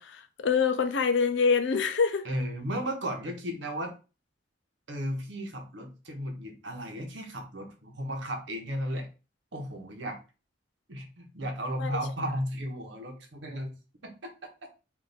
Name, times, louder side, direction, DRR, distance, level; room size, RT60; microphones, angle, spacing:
voice 1, 0.0-2.2 11.8-12.0, left 5 dB, 75° left, 0.5 m, -25 dB
voice 2, 2.2-3.9 4.9-9.1 9.5-10.2 10.9-13.7 14.0-14.3, equal, 75° right, 1.0 m, -34 dB
3.4 x 2.6 x 4.0 m
head